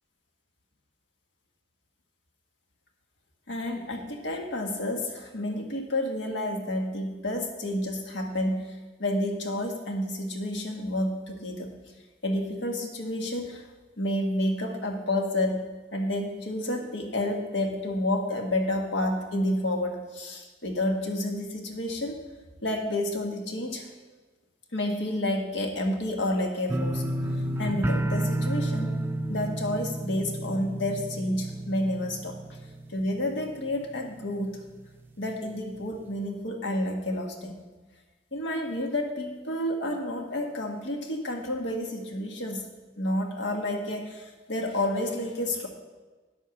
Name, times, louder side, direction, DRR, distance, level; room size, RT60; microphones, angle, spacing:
voice 1, 3.5-11.8 12.2-13.7 14.0-15.6 15.9-22.2 22.6-23.9 24.7-27.0 27.3-29.0 29.3-32.6 32.9-34.6 35.2-37.6 38.3-42.6 43.0-45.7, left 1 dB, 80° left, 3 dB, 1.5 m, -30 dB
sound 1, 26.7-33.6 33.9-34.4 34.8-34.9, right 1 dB, 10° right, 0.4 m, -31 dB
10.0 x 8.2 x 6.0 m, 1.3 s
head